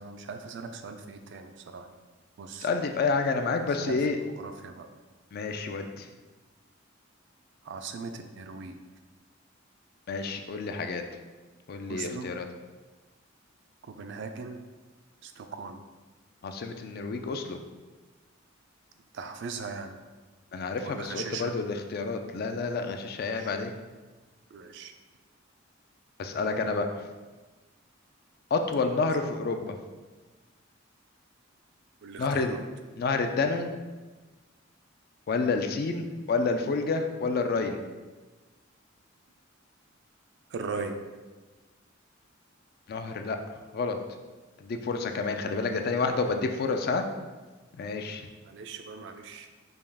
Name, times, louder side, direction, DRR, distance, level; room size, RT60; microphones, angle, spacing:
voice 1, 0.0-1.9 2.4-2.7 3.8-4.9 7.6-8.8 11.9-12.3 13.8-14.6 15.2-15.8 19.1-19.9 20.8-21.5 23.2-23.5 24.5-24.9 32.0-32.6 40.5-41.0 48.5-49.5, right 4 dB, 55° right, 7 dB, 0.3 m, -39 dB
voice 2, 2.6-4.2 5.3-6.1 10.1-11.0 11.7-12.5 16.4-17.6 20.5-23.7 26.2-27.0 28.5-29.8 32.2-32.6 33.0-33.7 35.3-37.8 42.9-43.4 43.7-44.0 44.6-47.0 47.7-48.3, left 4 dB, 45° left, 6 dB, 0.3 m, -29 dB
5.2 x 2.3 x 3.4 m, 1.3 s
head